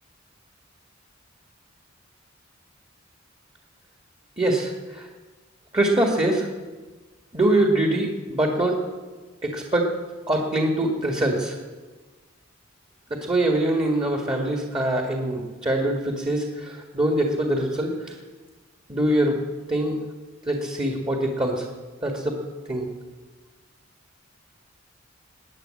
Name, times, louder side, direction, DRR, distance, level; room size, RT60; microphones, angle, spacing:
voice 1, 4.4-5.1 5.7-6.5 7.3-8.8 9.4-9.9 10.3-11.6 13.1-18.1 18.9-19.4 19.7-20.0 20.5-21.7 22.0-22.4 22.7-22.9, right 1 dB, 25° right, 2 dB, 1.8 m, -23 dB
20.0 x 9.4 x 7.8 m, 1.3 s
head